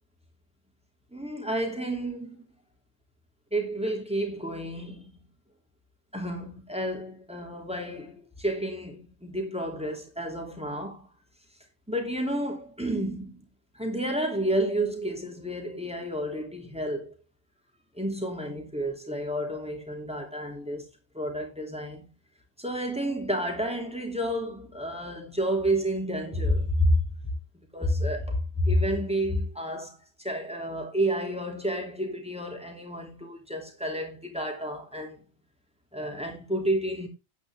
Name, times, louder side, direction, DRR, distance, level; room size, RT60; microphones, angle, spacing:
voice 1, 1.1-2.4 3.5-5.1 6.1-11.1 11.9-13.4 13.7-17.1 17.9-20.8 21.1-22.1 22.6-27.0 27.7-35.2 35.9-37.1, equal, 5° right, 2.7 m, -30 dB
9.5 x 8.8 x 3.4 m
omnidirectional pair, 1.3 m